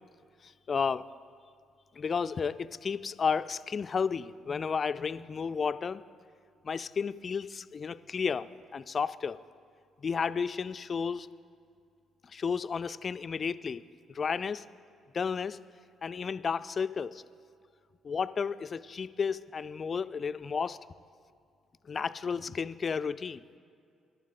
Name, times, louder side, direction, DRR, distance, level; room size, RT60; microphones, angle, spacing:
voice 1, 0.4-1.1 1.9-6.0 6.6-9.4 10.0-11.3 12.2-13.8 14.1-14.7 15.1-15.6 16.0-17.2 18.0-20.8 21.8-23.4, left 6 dB, 40° left, 14 dB, 0.3 m, -32 dB
25.5 x 12.0 x 2.5 m, 2.4 s
figure-of-eight pair, 40°, 0 cm